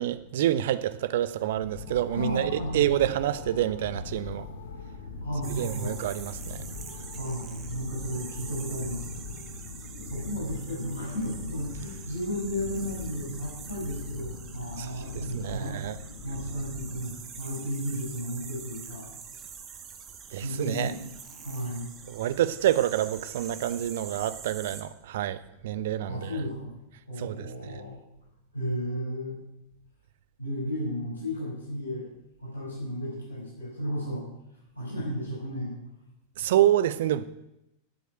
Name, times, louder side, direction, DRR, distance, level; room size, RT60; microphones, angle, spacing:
voice 1, 0.0-4.5 5.5-6.6 14.8-14.9 15.1-16.0 20.3-20.9 22.1-26.3 27.2-27.7 36.4-37.2, right 12 dB, 55° right, 0.8 m, -27 dB
sound 1, 1.4-17.4, left 4 dB, 60° left, 1.3 m, -41 dB
voice 2, 2.1-3.0 5.2-6.0 7.1-9.3 9.6-15.8 16.2-19.1 20.4-21.9 26.1-26.7 27.1-28.0 28.5-29.4 30.4-32.1 32.4-34.3 34.7-35.7, equal, 80° left, 5.9 m, -34 dB
sound 2, 5.4-24.8, right 7 dB, 30° right, 1.9 m, -45 dB
13.0 x 8.3 x 8.3 m
figure-of-eight pair, 90°, 0 cm